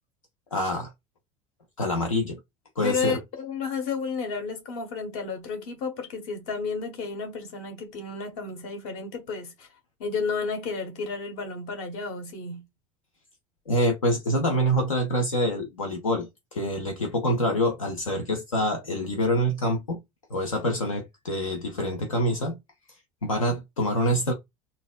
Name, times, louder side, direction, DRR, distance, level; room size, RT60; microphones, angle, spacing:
voice 1, 0.5-0.9 1.8-2.4 2.8-3.2 13.7-20.0 20.3-22.6 23.2-24.3, equal, 80° left, 0.7 m, -26 dB
voice 2, 2.8-9.7 10.0-12.6, left 5 dB, 55° left, 1.2 m, -32 dB
3.9 x 2.5 x 2.3 m
figure-of-eight pair, 65°, 17 cm